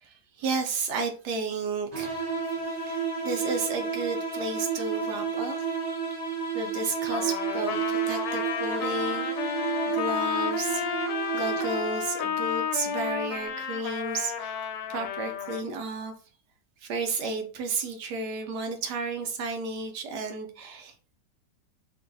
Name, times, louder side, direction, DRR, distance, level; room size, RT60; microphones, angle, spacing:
voice 1, 0.0-5.6 6.5-9.6 9.9-10.8 11.3-14.6 14.9-16.1 16.8-21.2, right 3 dB, 75° right, 5 dB, 1.1 m, -33 dB
sound 1, 1.9-12.1, right 6 dB, 45° right, 0.5 m, -31 dB
Trumpet, 7.1-15.6, left 7 dB, 80° left, 1.3 m, -32 dB
3.8 x 2.5 x 2.6 m, 0.39 s
omnidirectional pair, 2.0 m